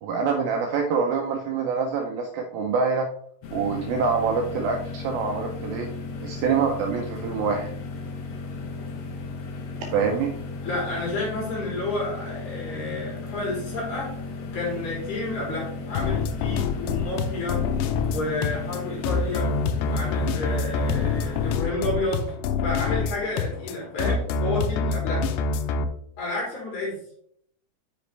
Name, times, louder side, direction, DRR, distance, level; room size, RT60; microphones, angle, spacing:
voice 1, 0.0-3.1 3.5-5.9 6.2-7.7 9.9-10.3, right 5 dB, 75° right, 2 dB, 2.2 m, -25 dB
sound 1, 3.4-21.6, left 3 dB, 70° left, 1.8 m, -35 dB
voice 2, 10.6-14.1 14.5-17.6 18.0-19.5 19.8-22.3 22.6-25.3 26.2-27.0, left 2 dB, 50° left, -4 dB, 4.2 m, -30 dB
sound 2, 16.0-25.8, left 5 dB, 85° left, 2.8 m, -26 dB
8.3 x 6.0 x 3.3 m, 0.66 s
omnidirectional pair, 4.8 m